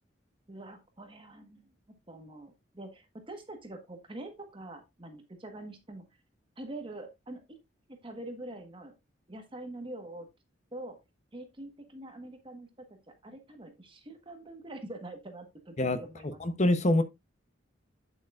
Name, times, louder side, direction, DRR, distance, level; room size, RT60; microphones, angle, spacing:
voice 1, 0.5-1.7 2.1-6.0 6.6-7.6 7.9-8.9 9.3-10.3 10.7-11.0 11.3-16.4, right 1 dB, 25° right, 1.3 m, -45 dB
voice 2, 15.8-17.0, left 1 dB, 35° left, 0.8 m, -26 dB
9.2 x 7.6 x 2.4 m
head